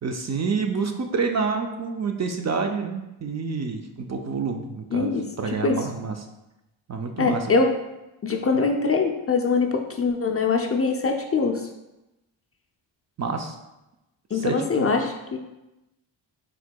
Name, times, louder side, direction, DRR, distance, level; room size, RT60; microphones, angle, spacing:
voice 1, 0.0-6.2 6.9-7.5 13.2-13.6 14.3-14.9, right 5 dB, 35° right, 4 dB, 0.4 m, -28 dB
voice 2, 4.9-5.9 7.2-7.8 8.2-11.7 14.3-15.4, left 4 dB, 30° left, 3 dB, 0.4 m, -23 dB
4.6 x 3.6 x 2.2 m, 0.97 s
cardioid pair, 55°, 47 cm